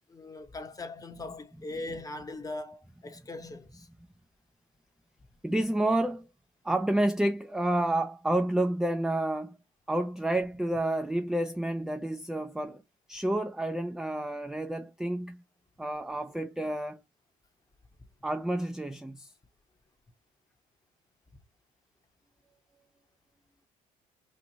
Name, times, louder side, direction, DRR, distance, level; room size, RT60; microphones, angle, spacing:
voice 1, 0.1-3.9, left 2 dB, 20° left, 0.8 m, -40 dB
voice 2, 5.4-6.3 6.6-9.6 9.9-12.8 13.1-15.4 15.8-17.0 18.2-19.3, right 1 dB, 5° right, 0.3 m, -29 dB
3.0 x 2.5 x 3.9 m
cardioid pair, 110°, 17 cm